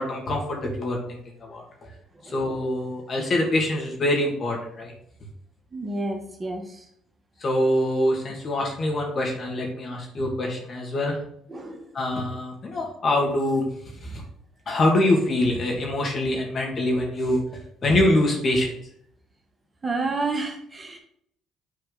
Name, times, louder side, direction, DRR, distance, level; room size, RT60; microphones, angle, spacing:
voice 1, 0.0-1.6 2.3-4.9 7.4-11.1 11.9-14.2 14.7-17.4 17.8-18.7, left 1 dB, 45° left, 0 dB, 2.7 m, -24 dB
voice 2, 5.7-6.6 11.5-11.8 19.8-21.0, right 3 dB, 25° right, 3 dB, 1.6 m, -29 dB
9.0 x 4.3 x 4.2 m, 0.68 s
supercardioid pair, 65°, 0 cm